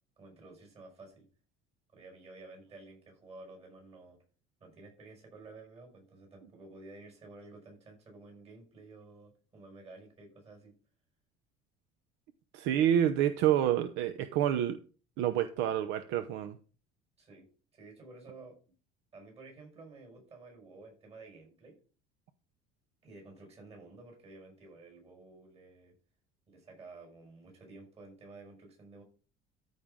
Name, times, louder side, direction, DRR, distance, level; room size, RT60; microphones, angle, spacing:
voice 1, 0.2-1.3 1.9-4.2 4.6-10.7 17.2-17.5 17.7-18.6 19.1-21.8 23.0-25.9 26.5-29.0, right 3 dB, 30° right, 2 dB, 5.8 m, -52 dB
voice 2, 12.5-14.8 15.2-16.6, right 10 dB, 70° right, 10 dB, 0.7 m, -28 dB
13.5 x 5.6 x 3.7 m, 0.38 s
cardioid pair, 155°, 20 cm